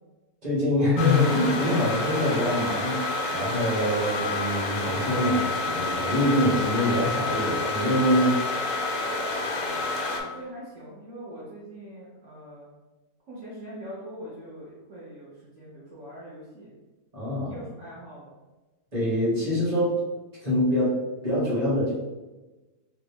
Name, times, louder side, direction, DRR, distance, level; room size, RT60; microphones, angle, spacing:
voice 1, 0.4-3.0 3.3-8.4 17.1-17.5 18.9-19.9 20.4-20.9 21.2-21.9, left 1 dB, 25° right, -8 dB, 1.4 m, -24 dB
sound 1, 1.0-10.2, left 3 dB, 70° left, 0.9 m, -29 dB
voice 2, 9.5-12.7 13.3-16.7 17.4-18.3, right 1 dB, 55° right, -9 dB, 1.1 m, -43 dB
3.3 x 2.5 x 3.4 m, 1.2 s
omnidirectional pair, 1.7 m